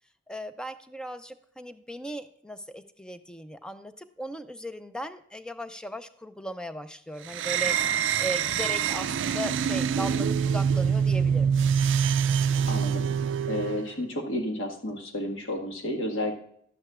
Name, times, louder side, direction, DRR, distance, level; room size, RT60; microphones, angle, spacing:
voice 1, 0.3-11.5, equal, 5° left, 10 dB, 0.5 m, -37 dB
sound 1, 7.3-13.9, right 7 dB, 65° right, 0.4 m, -25 dB
voice 2, 12.7-13.1 13.5-16.3, left 1 dB, 65° left, 2 dB, 1.7 m, -31 dB
12.0 x 9.7 x 2.4 m, 0.67 s
head